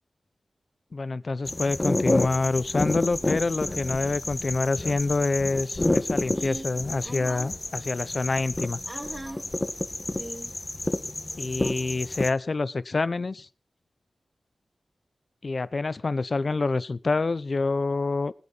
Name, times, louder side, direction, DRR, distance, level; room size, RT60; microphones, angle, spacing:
voice 1, 0.9-8.8 11.4-13.5 15.4-18.3, left 3 dB, 55° left, 16 dB, 0.7 m, -27 dB
sound 1, 1.5-12.3, left 2 dB, 30° left, 1.4 m, -29 dB
voice 2, 6.3-7.5 8.9-9.5 10.2-10.5 11.6-11.9, right 1 dB, 25° right, 1 dB, 2.9 m, -40 dB
21.5 x 8.4 x 4.0 m, 0.35 s
wide cardioid pair, 75°, 0 cm